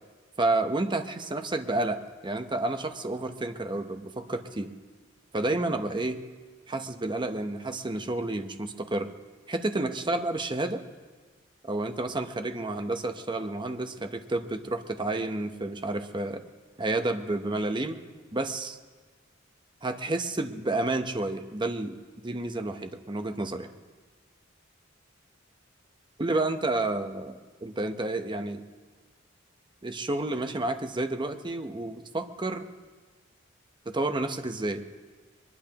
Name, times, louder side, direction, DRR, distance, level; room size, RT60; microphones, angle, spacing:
voice 1, 0.4-4.7 5.3-6.2 6.7-9.1 9.5-10.8 11.6-16.4 16.8-18.0 18.3-18.8 19.8-22.0 22.2-23.7 26.2-28.6 29.8-32.7 33.9-34.8, right 2 dB, 25° right, 7 dB, 0.8 m, -30 dB
23.0 x 20.5 x 2.9 m, 1.4 s
head